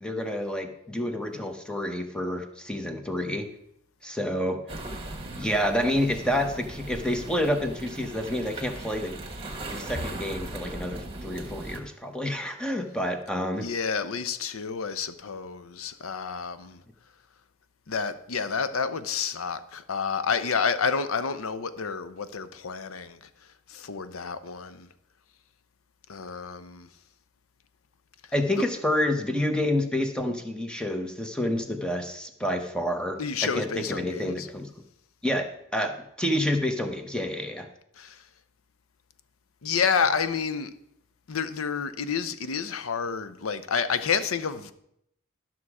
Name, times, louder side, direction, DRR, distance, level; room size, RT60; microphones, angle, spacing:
voice 1, 0.0-3.5 4.0-4.6 5.3-9.1 9.7-13.7 28.3-34.7 35.2-37.7, left 1 dB, 5° left, 0.9 m, -28 dB
sound 1, 4.7-11.8, right 2 dB, 25° right, 1.4 m, -38 dB
voice 2, 13.5-16.8 17.9-23.2 23.7-24.9 26.1-26.9 28.6-28.7 33.2-34.5 38.0-38.2 39.6-40.7 41.3-44.7, left 6 dB, 85° left, 0.7 m, -29 dB
12.0 x 6.1 x 4.8 m
head